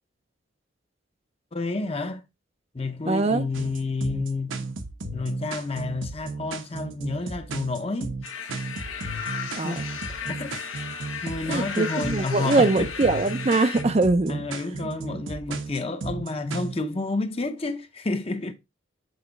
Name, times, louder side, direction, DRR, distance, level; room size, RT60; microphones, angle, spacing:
voice 1, 1.5-2.2 2.7-4.7 5.1-8.5 9.6-9.8 10.1-10.7 11.2-12.9 13.8-13.9 14.3-18.5, left 3 dB, 30° left, 0.7 m, -30 dB
voice 2, 3.1-3.4 9.6-9.8 11.5-14.4 15.1-15.2, right 3 dB, 30° right, 0.4 m, -22 dB
sound 1, 3.5-16.8, right 3 dB, 75° right, 1.0 m, -34 dB
sound 2, 8.2-13.8, left 6 dB, 80° left, 1.3 m, -35 dB
8.0 x 4.1 x 3.9 m
head